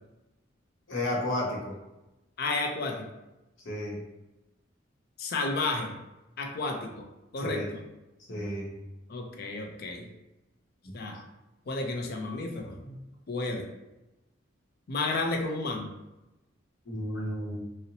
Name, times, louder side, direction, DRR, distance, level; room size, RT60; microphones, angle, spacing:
voice 1, 0.9-1.8 3.6-4.0 7.4-7.7 8.3-8.7 10.8-10.9 12.8-13.0 16.9-17.7, left 1 dB, 75° left, -3 dB, 0.8 m, -32 dB
voice 2, 2.4-3.0 5.2-5.9 6.4-7.1 7.3-7.8 9.1-10.1 10.9-11.2 11.7-12.7 13.3-13.6 14.9-15.9, left 3 dB, 50° left, 2 dB, 0.4 m, -31 dB
2.7 x 2.0 x 2.6 m, 0.98 s
head